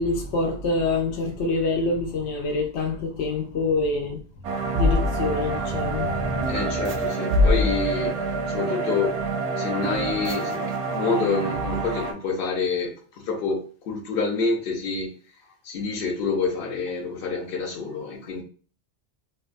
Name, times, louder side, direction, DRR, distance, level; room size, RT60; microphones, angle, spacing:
voice 1, 0.0-4.2 4.7-6.6, left 3 dB, 85° left, 1.0 m, -26 dB
sound 1, 4.4-12.1, right 1 dB, 85° right, 0.9 m, -25 dB
voice 2, 6.4-8.2 8.5-9.2 9.6-12.9 13.3-15.1 15.6-18.4, left 4 dB, 60° left, 0.9 m, -27 dB
2.6 x 2.3 x 2.4 m
omnidirectional pair, 1.1 m